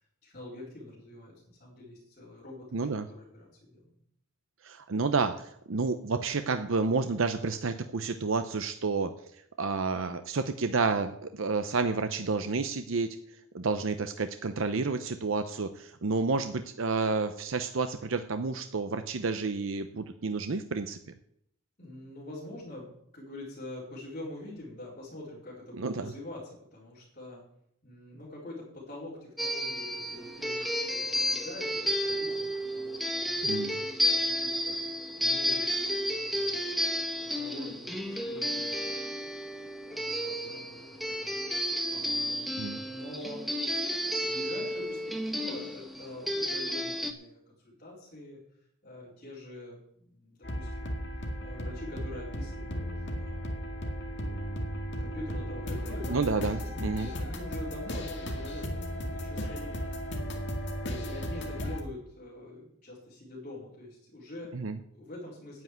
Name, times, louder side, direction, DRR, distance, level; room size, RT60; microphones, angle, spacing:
voice 1, 0.2-3.8 21.8-27.4 27.8-36.8 37.2-39.0 39.6-42.5 42.8-43.4 44.2-48.4 48.8-51.0 51.4-52.8 53.1-53.8 55.0-56.2 56.6-59.8 60.9-64.6 64.9-65.6, left 1 dB, 35° left, -9 dB, 4.3 m, -45 dB
voice 2, 2.7-3.1 4.6-9.1 9.6-13.2 13.5-21.0 25.8-26.1 33.4-33.7 42.6-42.8 56.1-57.1 64.5-64.8, right 4 dB, 65° right, 9 dB, 0.7 m, -30 dB
sound 1, 29.4-47.1, equal, ahead, 0.9 m, -32 dB
sound 2, 50.4-61.8, equal, 55° left, 2.1 m, -35 dB
9.5 x 8.2 x 9.3 m, 0.71 s
head